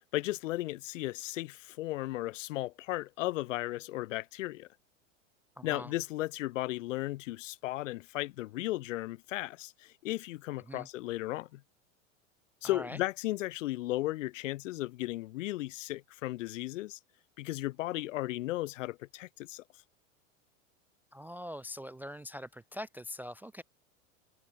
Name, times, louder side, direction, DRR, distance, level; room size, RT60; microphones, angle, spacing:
voice 1, 0.1-4.7 5.6-11.6 12.6-17.0 17.4-19.6, left 17 dB, 70° left, 0.8 m, -35 dB
voice 2, 5.6-5.9 10.7-10.9 12.6-13.0 21.1-23.6, left 1 dB, 5° right, 0.3 m, -43 dB
hypercardioid pair, 95°, 39 cm